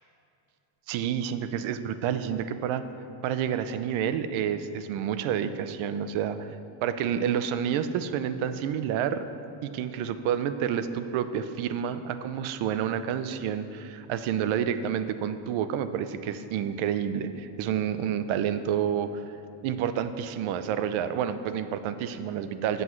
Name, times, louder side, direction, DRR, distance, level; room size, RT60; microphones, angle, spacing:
voice 1, 0.9-2.8 3.2-6.5 6.8-9.2 9.6-19.2 19.6-22.8, right 9 dB, 75° right, 11 dB, 0.7 m, -29 dB
13.0 x 8.0 x 3.2 m, 2.7 s
cardioid pair, 115°, 48 cm